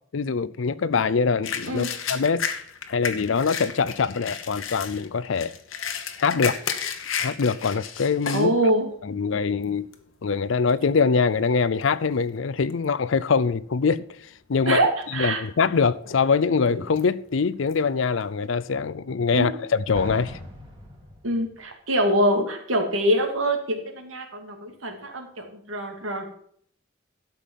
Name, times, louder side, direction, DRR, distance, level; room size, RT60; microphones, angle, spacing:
voice 1, 0.1-2.5 2.9-5.5 6.2-6.6 7.2-8.5 9.0-9.9 10.2-14.1 14.5-14.8 15.2-20.4, left 5 dB, 70° left, 0.5 m, -23 dB
sound 1, 1.4-8.5 9.0-9.1 9.6-10.0 10.7-10.9 11.2-12.4 12.7-13.2 13.6-13.7 14.6-15.1 15.5-18.6, left 7 dB, 90° left, 1.2 m, -33 dB
voice 2, 8.3-8.9 14.7-14.9 15.1-15.4 19.3-19.6 21.2-26.3, right 1 dB, 85° right, 2.4 m, -24 dB
Explosion, 19.9-21.7, equal, 25° right, 2.6 m, -40 dB
12.5 x 5.4 x 7.4 m
head